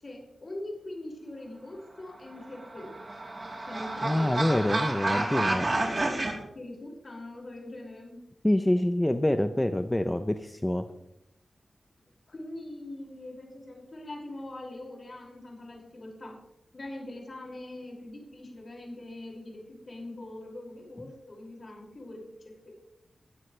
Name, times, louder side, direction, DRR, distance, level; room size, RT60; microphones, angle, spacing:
voice 1, 0.0-2.9 3.7-4.3 6.5-8.2 12.3-16.4 16.7-22.2, left 1 dB, 40° left, -1 dB, 5.9 m, -42 dB
sound 1, 2.4-6.3, right 2 dB, 35° right, 3.4 m, -30 dB
voice 2, 4.0-5.7 8.4-10.8, left 1 dB, 10° left, 8 dB, 0.7 m, -26 dB
21.5 x 13.0 x 3.3 m, 0.83 s
wide cardioid pair, 125°, 0 cm